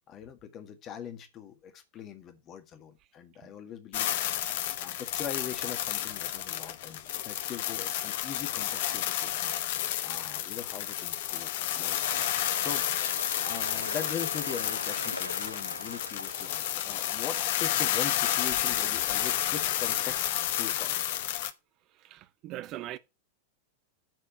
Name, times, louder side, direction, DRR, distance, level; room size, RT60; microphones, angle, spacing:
voice 1, 0.1-4.2 4.8-9.5 10.0-12.0 12.3-13.1 13.3-20.3 20.6-21.0, left 8 dB, 30° left, 1.8 m, -41 dB
sound 1, 3.9-21.5, left 12 dB, 55° left, 0.9 m, -31 dB
sound 2, 12.0-17.1, left 1 dB, 85° left, 0.7 m, -40 dB
voice 2, 21.9-23.0, right 14 dB, 40° right, 0.6 m, -41 dB
9.1 x 4.4 x 6.8 m
figure-of-eight pair, 90°, 0 cm